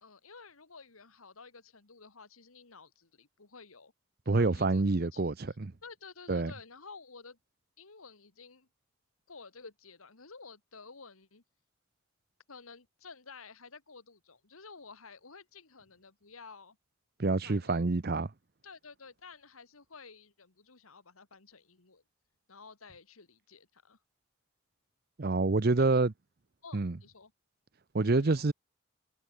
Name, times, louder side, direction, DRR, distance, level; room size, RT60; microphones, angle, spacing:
voice 1, 0.0-3.9 4.4-5.5 5.8-7.4 7.8-8.7 9.3-11.4 12.5-16.8 17.4-17.8 18.6-22.0 22.5-24.0 25.8-26.0 26.6-27.3 28.0-28.5, left 4 dB, 90° left, 2.2 m, -52 dB
voice 2, 4.3-5.7 6.3-6.5 17.2-18.3 25.2-26.1 26.7-27.0 27.9-28.5, right 3 dB, 45° right, 0.7 m, -27 dB
head